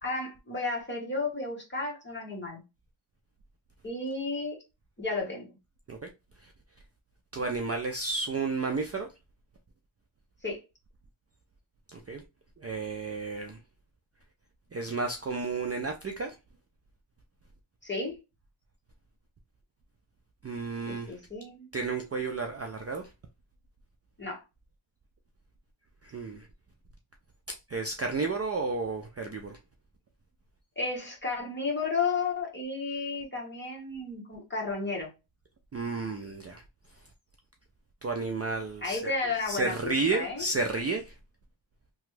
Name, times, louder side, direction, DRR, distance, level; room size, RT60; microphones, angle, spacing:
voice 1, 0.0-2.6 3.8-4.6 5.0-5.5 10.4-10.6 17.8-18.2 20.9-21.7 24.2-24.4 30.8-35.1 38.8-40.5, left 3 dB, 20° left, 1.2 m, -33 dB
voice 2, 7.3-9.1 11.9-12.2 12.6-13.6 14.7-16.3 20.4-21.2 21.7-23.1 26.0-26.5 27.5-29.6 35.7-36.6 38.0-39.0 39.5-41.1, right 3 dB, 30° right, 0.4 m, -32 dB
2.9 x 2.3 x 3.1 m
wide cardioid pair, 95°, 50 cm